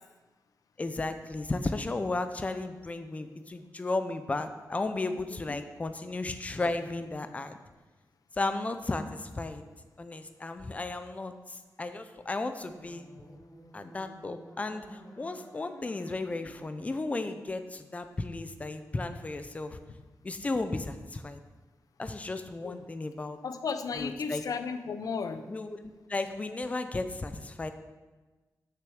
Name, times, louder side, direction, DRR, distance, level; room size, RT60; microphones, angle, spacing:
voice 1, 0.8-7.6 8.4-9.6 10.0-13.1 13.7-19.8 20.2-21.4 22.0-23.4 24.0-24.4 25.5-27.7, left 2 dB, 20° left, 9 dB, 0.5 m, -34 dB
sound 1, 12.7-17.8, equal, 35° left, 2.2 m, -53 dB
voice 2, 23.4-25.4, left 5 dB, 65° left, 8 dB, 0.6 m, -34 dB
6.8 x 6.2 x 6.3 m, 1.2 s
wide cardioid pair, 160°, 7 cm